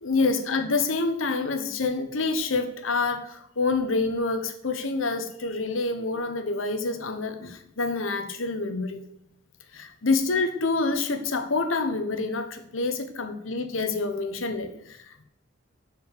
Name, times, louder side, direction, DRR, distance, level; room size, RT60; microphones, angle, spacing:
voice 1, 0.0-9.0 9.7-15.3, left 3 dB, 80° left, 8 dB, 1.1 m, -27 dB
9.3 x 5.1 x 6.8 m, 0.76 s
head